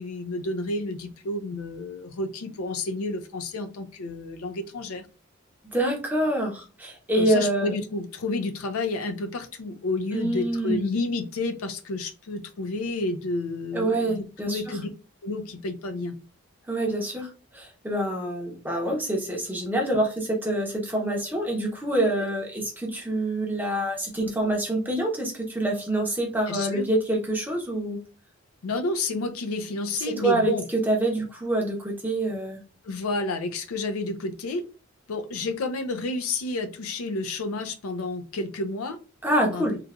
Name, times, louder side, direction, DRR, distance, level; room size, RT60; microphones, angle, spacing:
voice 1, 0.0-5.1 7.2-14.9 15.2-16.2 26.5-26.9 28.6-30.7 32.8-34.6 35.1-39.0 39.4-39.7, left 2 dB, 85° left, 7 dB, 0.5 m, -30 dB
voice 2, 5.7-7.7 10.1-10.9 13.7-14.8 16.7-28.0 30.1-30.5 30.9-32.6 39.2-39.8, right 1 dB, 10° right, 0 dB, 0.6 m, -26 dB
3.2 x 2.2 x 2.3 m, 0.35 s
head